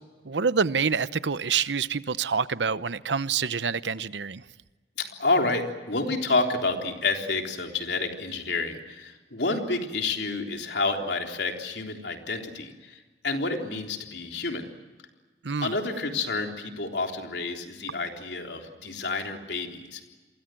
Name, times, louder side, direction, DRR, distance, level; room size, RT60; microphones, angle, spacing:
voice 1, 0.2-4.4 15.4-15.7, right 5 dB, 80° right, 0.8 m, -27 dB
voice 2, 5.0-14.7 15.6-20.0, left 3 dB, 70° left, 3.5 m, -29 dB
29.0 x 23.5 x 7.7 m
head